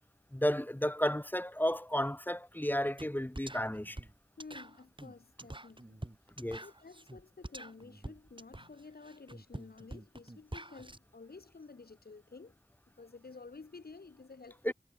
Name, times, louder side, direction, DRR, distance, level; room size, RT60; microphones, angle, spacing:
voice 1, 0.3-4.0 6.4-6.6 14.6-14.7, equal, 10° left, 0.9 m, -32 dB
sound 1, 3.0-3.1 3.3-11.0, right 1 dB, 30° right, 4.7 m, -46 dB
voice 2, 4.4-6.0 6.5-12.6 13.0-14.7, left 4 dB, 80° left, 1.1 m, -52 dB
wide cardioid pair, 40°, 16 cm